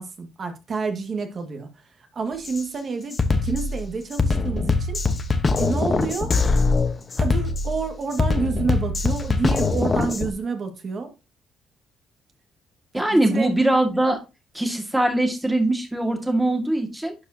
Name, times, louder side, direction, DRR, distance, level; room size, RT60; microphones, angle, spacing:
voice 1, 0.0-1.7 2.1-5.0 5.6-6.3 7.2-11.1 12.9-13.5, right 4 dB, 45° right, 1.8 m, -28 dB
Drum kit, 2.4-2.6 3.1-10.3, left 3 dB, 35° left, 1.0 m, -22 dB
voice 2, 12.9-14.2 14.5-17.2, right 1 dB, 10° right, 1.9 m, -21 dB
11.5 x 4.8 x 2.8 m
cardioid pair, 90°, 0 cm